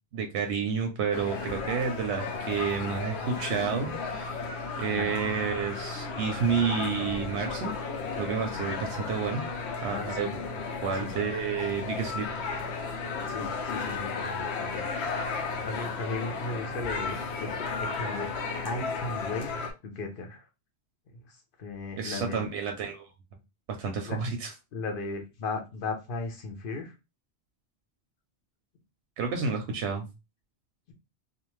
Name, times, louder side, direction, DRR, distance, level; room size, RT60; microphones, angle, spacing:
voice 1, 0.1-4.4 4.8-7.7 8.1-9.4 9.8-10.3 10.8-12.4 22.0-23.1 23.8-24.5 29.2-30.1, right 6 dB, 90° right, 4 dB, 0.9 m, -30 dB
sound 1, 1.1-19.7, left 4 dB, 85° left, 0.9 m, -34 dB
voice 2, 9.9-10.3 10.9-11.2 13.3-14.8 15.6-18.3 18.6-19.5 19.8-20.4 21.1-21.2 21.6-22.4 24.0-24.2 24.7-26.9, left 3 dB, 60° left, 4 dB, 0.8 m, -36 dB
2.5 x 2.4 x 3.0 m, 0.26 s
omnidirectional pair, 1.1 m